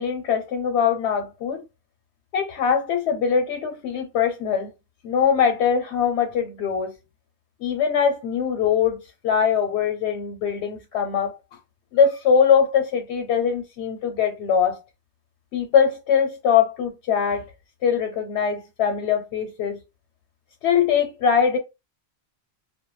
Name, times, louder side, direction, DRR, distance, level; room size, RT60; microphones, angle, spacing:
voice 1, 0.0-1.6 2.3-4.7 5.0-7.0 7.6-11.4 11.9-14.8 15.5-17.4 17.8-19.8 20.6-21.6, left 7 dB, 80° left, 0.8 m, -22 dB
2.1 x 2.0 x 3.1 m
omnidirectional pair, 1.1 m